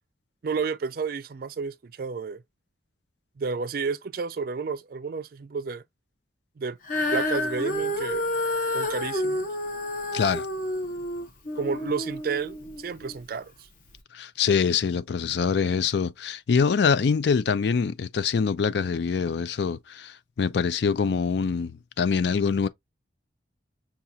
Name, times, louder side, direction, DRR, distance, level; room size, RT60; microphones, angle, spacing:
voice 1, 0.4-2.4 3.4-5.8 6.6-6.8 7.1-8.3 8.7-9.5 11.6-13.5, right 5 dB, 50° right, 0.4 m, -31 dB
Female singing, 6.8-13.2 13.9-14.0, left 1 dB, 45° left, 0.9 m, -29 dB
voice 2, 10.1-10.5 14.1-22.7, left 6 dB, 65° left, 0.4 m, -24 dB
5.9 x 2.3 x 2.6 m
head